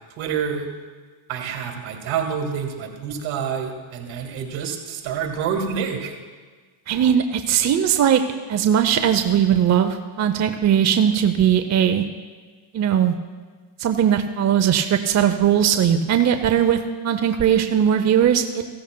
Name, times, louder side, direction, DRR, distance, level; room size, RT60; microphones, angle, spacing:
voice 1, 0.2-0.7 1.3-6.1, right 7 dB, 70° right, 3 dB, 2.0 m, -27 dB
voice 2, 6.9-8.2 8.5-12.0 12.7-13.1 13.8-16.8 17.0-18.6, right 9 dB, 35° right, 7 dB, 0.6 m, -19 dB
15.5 x 14.0 x 2.2 m, 1.5 s
cardioid pair, 100°, 49 cm